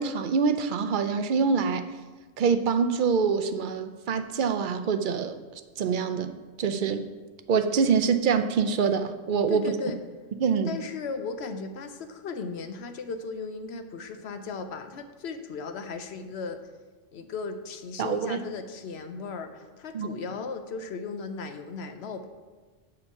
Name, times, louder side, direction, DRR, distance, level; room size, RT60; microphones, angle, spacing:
voice 1, 0.0-1.8 2.4-5.4 5.8-6.3 6.6-7.1 7.5-9.7 10.4-10.7 18.0-18.4 19.9-20.2, right 5 dB, 55° right, 8 dB, 0.5 m, -25 dB
voice 2, 9.5-10.0 10.6-16.6 17.1-22.3, left 4 dB, 65° left, 8 dB, 0.9 m, -36 dB
6.8 x 5.3 x 6.9 m, 1.3 s
omnidirectional pair, 1.3 m